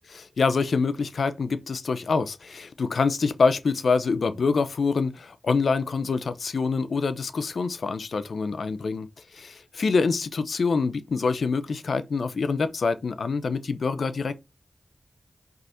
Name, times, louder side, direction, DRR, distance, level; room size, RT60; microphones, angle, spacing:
voice 1, 0.1-9.1 9.3-14.4, left 4 dB, 80° left, 0.8 m, -25 dB
5.5 x 3.9 x 5.7 m
cardioid pair, 45°, 0 cm